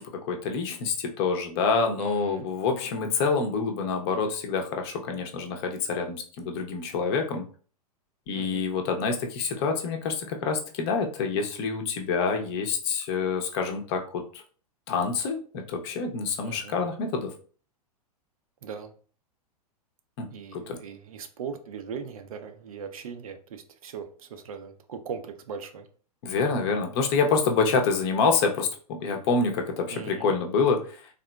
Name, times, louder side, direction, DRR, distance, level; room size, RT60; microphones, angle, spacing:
voice 1, 0.0-7.4 8.3-14.2 14.9-17.3 20.2-20.3 20.5-20.8 26.2-31.0, left 5 dB, 40° left, 4 dB, 0.7 m, -27 dB
voice 2, 2.0-2.5 8.3-8.6 16.4-16.8 18.6-18.9 20.3-25.9 29.9-30.4, right 6 dB, 60° right, 7 dB, 0.6 m, -39 dB
3.7 x 2.8 x 2.2 m, 0.42 s
figure-of-eight pair, 100°, 20 cm